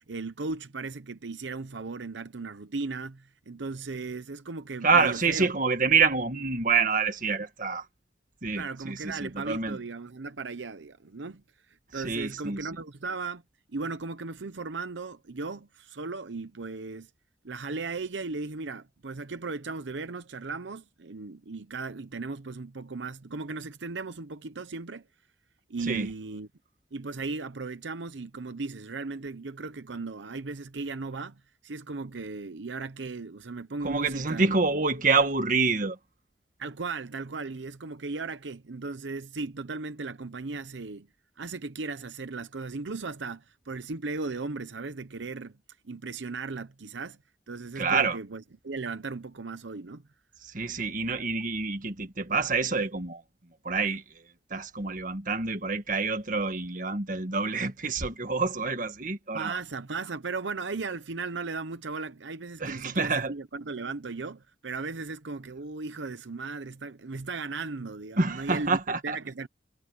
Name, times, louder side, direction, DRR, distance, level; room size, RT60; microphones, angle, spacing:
voice 1, 0.0-5.5 8.6-11.4 11.9-13.4 13.7-17.1 17.4-25.0 25.7-26.5 26.9-34.8 36.6-41.1 41.4-45.6 45.8-47.2 47.5-50.0 59.3-69.5, right 3 dB, 85° right, 0.8 m, -36 dB
voice 2, 4.8-7.9 8.4-9.8 11.9-12.7 25.9-26.1 33.8-36.0 47.7-48.2 50.4-53.2 53.6-54.2 54.5-59.6 62.6-63.3 68.2-69.2, right 4 dB, 45° right, 1.7 m, -27 dB
head